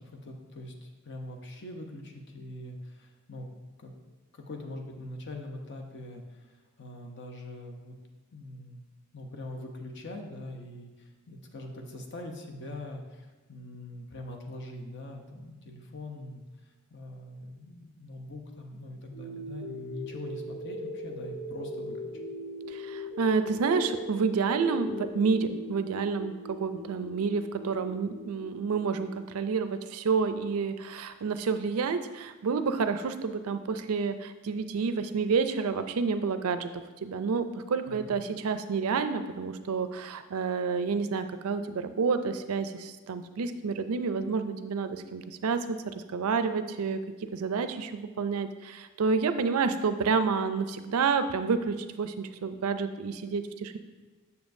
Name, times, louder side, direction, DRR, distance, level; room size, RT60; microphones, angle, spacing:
voice 1, 0.0-3.5 3.8-3.9 4.3-8.0 8.3-8.8 9.1-22.1 37.9-38.1, left 1 dB, 50° left, 2 dB, 0.8 m, -43 dB
sound 1, 19.1-29.1, equal, 70° left, 2.2 m, -40 dB
voice 2, 22.7-36.7 37.0-47.0 47.3-53.8, right 5 dB, 75° right, 10 dB, 0.4 m, -29 dB
7.0 x 6.8 x 2.6 m, 1.3 s
head